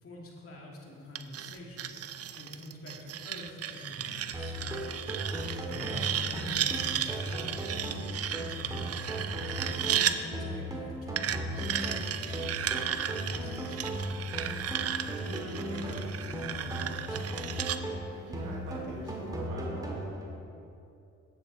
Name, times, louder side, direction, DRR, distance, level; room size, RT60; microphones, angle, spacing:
voice 1, 0.0-2.0 2.3-4.9 5.6-9.0 9.5-14.4 15.2-17.5, left 1 dB, 50° left, -2 dB, 2.4 m, -46 dB
sound 1, 1.1-10.2 11.2-17.8, right 10 dB, 55° right, 0.6 m, -34 dB
sound 2, 4.3-20.3, right 1 dB, 10° right, 1.8 m, -37 dB
voice 2, 5.3-5.9 18.2-20.1, right 1 dB, 90° right, -3 dB, 1.6 m, -44 dB
12.5 x 8.4 x 4.2 m, 2.7 s
cardioid pair, 90°, 30 cm